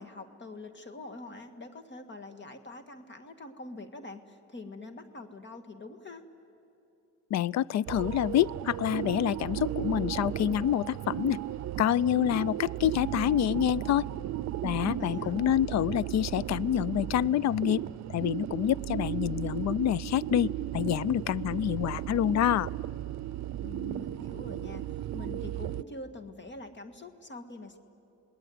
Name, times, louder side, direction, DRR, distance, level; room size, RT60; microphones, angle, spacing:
voice 1, 0.0-6.2 14.9-15.4 23.6-27.8, left 2 dB, 40° left, 8 dB, 1.8 m, -45 dB
voice 2, 7.3-11.4 11.8-14.1 14.6-17.8 18.1-22.7, left 11 dB, 65° left, 24 dB, 0.5 m, -27 dB
sound 1, 7.9-25.8, right 13 dB, 65° right, 0.6 m, -35 dB
28.0 x 19.5 x 9.4 m, 2.9 s
cardioid pair, 90°, 30 cm